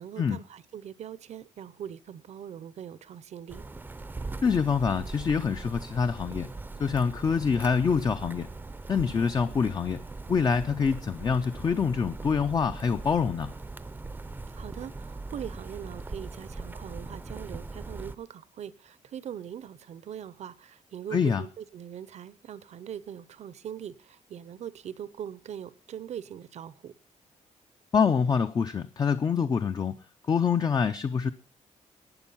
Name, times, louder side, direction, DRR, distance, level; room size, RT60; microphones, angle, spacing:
voice 1, 0.0-3.6 14.5-26.9, right 9 dB, 60° right, 0.7 m, -41 dB
sound 1, 3.5-18.2, right 3 dB, 15° right, 0.6 m, -40 dB
voice 2, 4.4-6.5 6.8-8.5 8.9-10.0 10.3-13.5 21.1-21.4 27.9-29.9 30.3-31.3, left 6 dB, 30° left, 0.5 m, -25 dB
12.0 x 8.8 x 5.5 m
wide cardioid pair, 160°, 13 cm